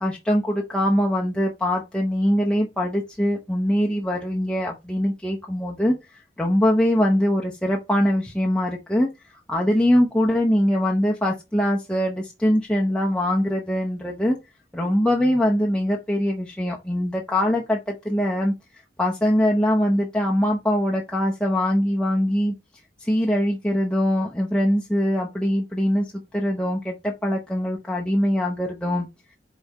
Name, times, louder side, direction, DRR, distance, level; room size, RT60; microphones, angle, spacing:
voice 1, 0.0-14.4 14.7-22.5 23.0-29.1, equal, 5° left, 0.7 m, -22 dB
5.5 x 4.1 x 4.6 m
head